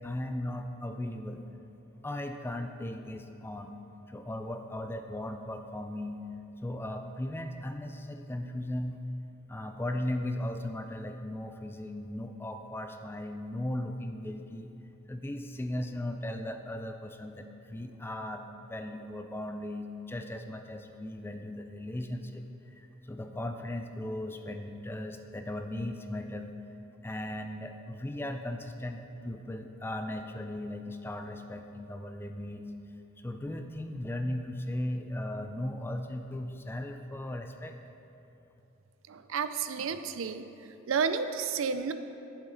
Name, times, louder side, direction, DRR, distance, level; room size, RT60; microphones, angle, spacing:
voice 1, 0.0-1.4 2.0-3.7 4.1-6.2 6.6-9.0 9.5-14.7 15.1-22.5 22.8-26.5 27.0-29.0 29.2-32.7 33.2-37.8, left 1 dB, 10° left, 6 dB, 0.3 m, -37 dB
voice 2, 39.1-40.4 40.9-41.9, right 6 dB, 70° right, 10 dB, 0.4 m, -31 dB
10.5 x 7.0 x 3.9 m, 2.8 s
head